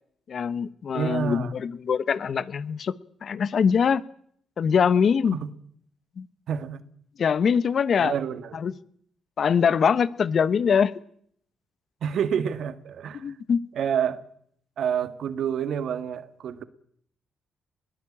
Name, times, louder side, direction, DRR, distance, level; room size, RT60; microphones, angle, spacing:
voice 1, 0.3-2.9 3.2-4.0 4.6-5.4 6.2-6.3 7.2-8.1 8.5-8.7 9.4-10.9 13.1-13.6, left 6 dB, 55° left, 1.0 m, -23 dB
voice 2, 0.9-1.5 5.3-5.5 6.5-6.8 8.0-8.6 12.0-13.3 13.7-14.2 14.8-16.6, right 8 dB, 70° right, 1.7 m, -28 dB
22.0 x 16.5 x 8.8 m
supercardioid pair, 65°, 0 cm